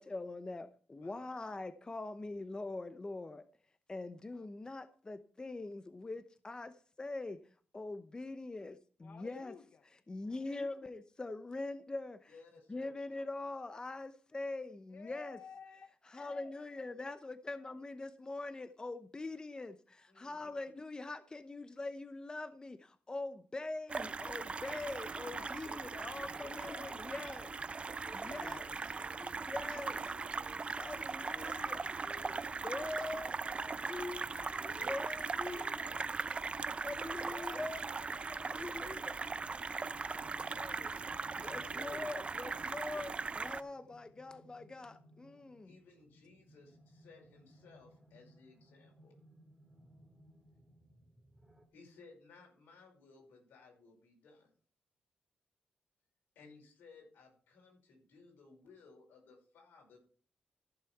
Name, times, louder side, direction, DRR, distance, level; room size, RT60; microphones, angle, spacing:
voice 1, 0.0-3.4 3.9-7.4 7.7-9.5 10.1-12.3 12.7-15.4 16.1-27.5 28.2-28.7 29.5-30.0 30.8-31.8 32.6-34.5 34.8-35.7 36.8-37.8 38.5-39.2 41.4-45.7, left 2 dB, 25° left, 0.8 m, -43 dB
voice 2, 9.0-9.8 14.9-16.5 25.2-27.0 31.4-33.4 34.3-36.1 37.3-39.9 40.5-42.2, left 6 dB, 55° left, 0.9 m, -55 dB
voice 3, 12.3-12.9 20.1-20.5 26.0-26.5 28.0-29.4 29.7-30.6 34.4-35.2 45.6-49.2 51.7-54.5 56.4-60.0, left 3 dB, 90° left, 5.7 m, -59 dB
sound 1, 23.9-43.6, right 4 dB, 35° right, 0.6 m, -39 dB
sound 2, 35.6-51.7, right 1 dB, 5° right, 2.6 m, -64 dB
14.5 x 6.9 x 4.7 m
cardioid pair, 85°, 3 cm